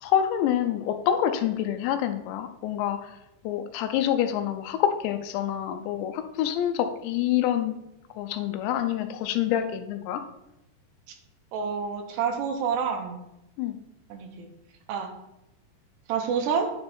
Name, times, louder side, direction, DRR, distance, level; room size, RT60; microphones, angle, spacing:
voice 1, 0.0-3.2 3.4-7.8 8.2-10.2 13.6-13.8, left 10 dB, 85° left, 9 dB, 2.8 m, -27 dB
voice 2, 11.5-13.2 14.1-14.5 14.9-15.1 16.1-16.7, right 6 dB, 75° right, 4 dB, 2.8 m, -28 dB
9.7 x 5.2 x 4.3 m, 0.87 s
omnidirectional pair, 5.2 m